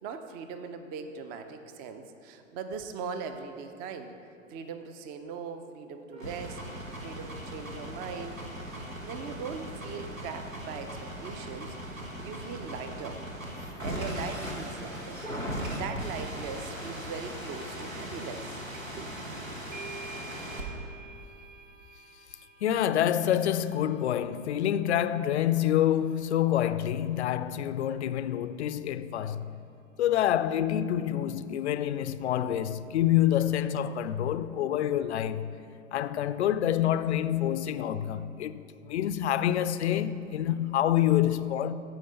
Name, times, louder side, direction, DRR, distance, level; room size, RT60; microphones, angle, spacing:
voice 1, 0.0-4.1 4.5-8.4 9.0-13.2 13.8-15.2 15.7-18.6 19.0-19.6, right 5 dB, 25° right, 0.5 m, -40 dB
sound 1, 6.1-20.6, equal, 85° right, 1.5 m, -38 dB
sound 2, 18.7-19.1 19.3-26.6, right 4 dB, 65° right, 0.8 m, -49 dB
voice 2, 22.6-29.5 30.0-35.6 35.9-41.7, left 11 dB, 60° left, 0.5 m, -27 dB
14.0 x 4.8 x 5.2 m
figure-of-eight pair, 100°, 39 cm